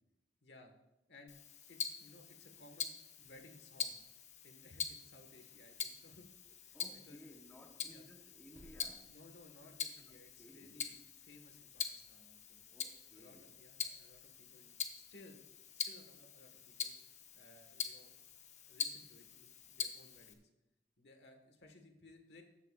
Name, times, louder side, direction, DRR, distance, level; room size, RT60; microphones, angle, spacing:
voice 1, 0.4-0.7 1.1-1.4 1.7-4.0 4.4-7.2 7.6-8.1 9.0-12.6 13.1-15.4 15.7-16.9 17.3-18.1 18.7-20.5 21.0-22.4, left 2 dB, 65° left, 5 dB, 1.6 m, -60 dB
Tick-tock, 1.3-20.3, left 7 dB, 40° left, 0.9 m, -45 dB
sound 1, 3.2-4.3 4.6-5.8 6.0-6.1 6.5-6.7 6.9-7.0 7.4-10.0, equal, 40° right, 2.7 m, -67 dB
voice 2, 6.7-9.1 10.1-10.9 12.7-13.5, equal, 10° left, 1 dB, 1.1 m, -59 dB
15.0 x 11.0 x 2.5 m, 0.89 s
head